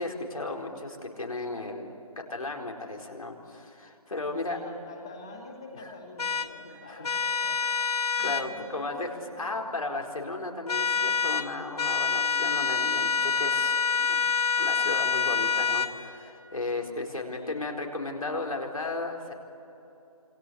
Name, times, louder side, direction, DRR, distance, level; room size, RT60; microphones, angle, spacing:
voice 1, 0.0-1.9 2.3-4.6 6.6-7.2 8.2-14.2 14.6-19.3, left 2 dB, 70° left, 1 dB, 4.5 m, -35 dB
voice 2, 4.4-7.8 8.2-9.7 17.1-17.7, left 2 dB, 10° left, 2 dB, 1.1 m, -45 dB
sound 1, 6.2-6.5 7.0-8.5 10.7-11.5 11.8-15.9, left 5 dB, 85° left, 2.4 m, -26 dB
27.0 x 25.5 x 8.3 m, 2.9 s
figure-of-eight pair, 180°, 19 cm